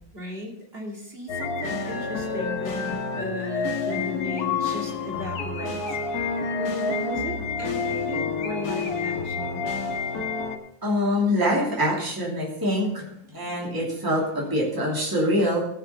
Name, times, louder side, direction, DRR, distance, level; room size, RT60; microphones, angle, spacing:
voice 1, 0.1-9.6, equal, 30° right, -1 dB, 2.6 m, -36 dB
sound 1, 1.3-10.6, left 4 dB, 55° left, 1.7 m, -28 dB
voice 2, 10.8-13.1 13.3-15.6, equal, 10° right, -4 dB, 2.6 m, -24 dB
17.0 x 5.8 x 5.6 m, 0.76 s
omnidirectional pair, 2.2 m